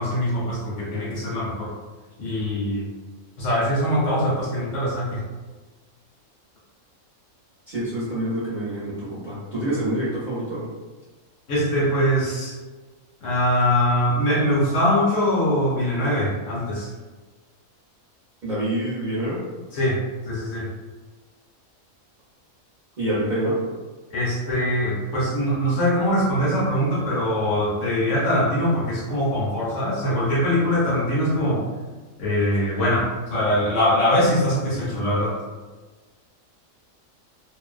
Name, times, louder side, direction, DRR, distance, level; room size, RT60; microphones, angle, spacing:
voice 1, 0.0-1.7 2.2-2.9 3.4-5.2 11.5-12.6 13.2-16.9 19.7-20.0 20.3-20.7 24.1-31.6 32.2-35.4, equal, 60° left, -7 dB, 1.0 m, -22 dB
voice 2, 7.7-10.7 18.4-19.4 23.0-23.6, right 1 dB, 45° right, -11 dB, 0.7 m, -26 dB
2.5 x 2.0 x 2.4 m, 1.3 s
omnidirectional pair, 1.5 m